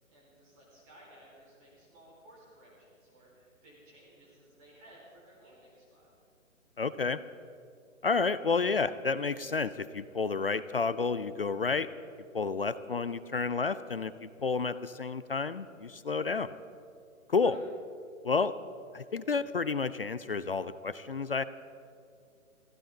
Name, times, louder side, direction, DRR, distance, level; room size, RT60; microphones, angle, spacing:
voice 1, 0.1-6.1 17.4-17.6, right 1 dB, 25° right, -5 dB, 4.6 m, -57 dB
voice 2, 6.8-7.2 8.0-11.9 12.3-16.5 17.3-17.6 18.2-18.6 18.9-21.4, left 4 dB, 45° left, 14 dB, 0.4 m, -30 dB
24.5 x 15.5 x 3.8 m, 2.5 s
hypercardioid pair, 160°, 41 cm